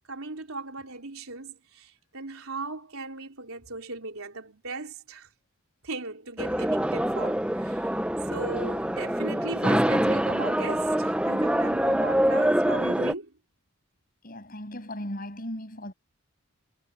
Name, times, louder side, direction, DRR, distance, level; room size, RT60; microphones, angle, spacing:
voice 1, 0.1-5.3 5.8-7.8 8.3-13.3, right 3 dB, 75° right, 3.5 m, -37 dB
sound 1, 6.4-13.1, right 1 dB, 5° right, 0.7 m, -25 dB
voice 2, 14.2-15.9, left 1 dB, 40° left, 8.0 m, -37 dB
head